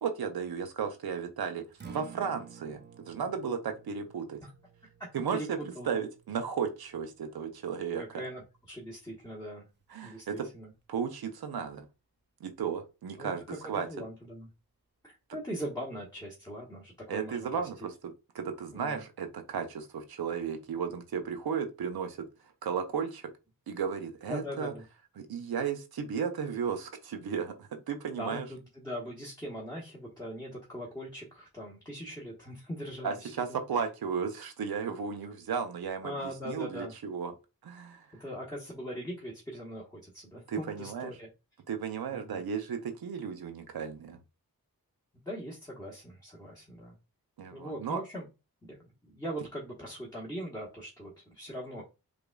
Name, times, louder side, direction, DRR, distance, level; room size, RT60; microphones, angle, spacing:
voice 1, 0.0-2.8 3.1-4.5 5.1-8.2 9.9-10.5 10.9-11.9 12.4-13.9 17.1-23.3 23.7-24.7 25.2-28.5 33.0-37.3 37.6-38.2 40.5-41.1 41.7-44.2 47.4-48.0, right 6 dB, 80° right, 0.6 m, -34 dB
Acoustic guitar, 1.7-9.9, right 6 dB, 30° right, 0.5 m, -54 dB
voice 2, 5.0-5.5 5.8-6.0 8.0-9.7 10.0-10.7 13.2-13.6 13.9-14.5 15.0-17.7 18.7-19.0 24.3-24.8 28.2-33.6 36.0-36.9 38.2-41.3 42.1-42.4 45.2-47.0 47.5-48.2 48.7-48.8 49.0-51.8, equal, 10° left, 1.1 m, -41 dB
4.9 x 2.4 x 2.2 m
wide cardioid pair, 65°, 36 cm